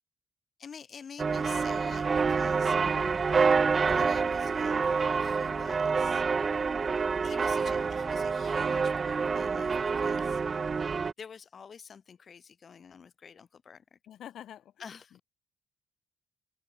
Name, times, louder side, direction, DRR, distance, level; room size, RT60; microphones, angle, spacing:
voice 1, 0.6-2.8 3.7-6.2 7.2-10.4 11.2-14.0 14.8-15.2, left 6 dB, 45° left, 1.8 m, -48 dB
sound 1, 1.2-11.1, right 5 dB, 35° right, 1.0 m, -27 dB
voice 2, 14.1-14.7, left 11 dB, 75° left, 2.4 m, -46 dB
cardioid pair, 90°, 0 cm